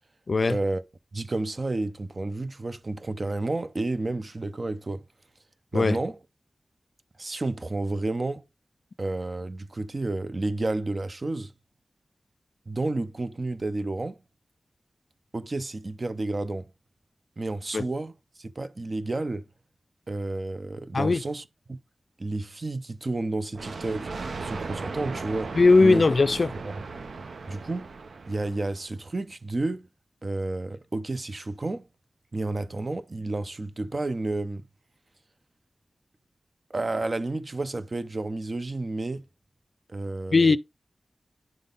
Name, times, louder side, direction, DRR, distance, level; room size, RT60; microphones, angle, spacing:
voice 1, 0.5-0.8 1.1-5.0 5.7-6.2 7.2-8.4 9.0-11.5 12.7-14.2 15.3-16.7 17.4-19.4 20.1-21.4 21.7-21.8 22.2-24.1 24.4-26.0 27.5-27.9 28.3-29.9 30.2-31.9 32.3-34.6 36.7-39.2 39.9-40.6, right 2 dB, 40° right, 0.5 m, -31 dB
Thunder, 23.5-28.9, right 4 dB, 85° right, 0.6 m, -37 dB
voice 2, 25.6-26.5 40.3-40.6, left 3 dB, 55° left, 0.4 m, -19 dB
10.5 x 3.7 x 3.8 m
wide cardioid pair, 100°, 0 cm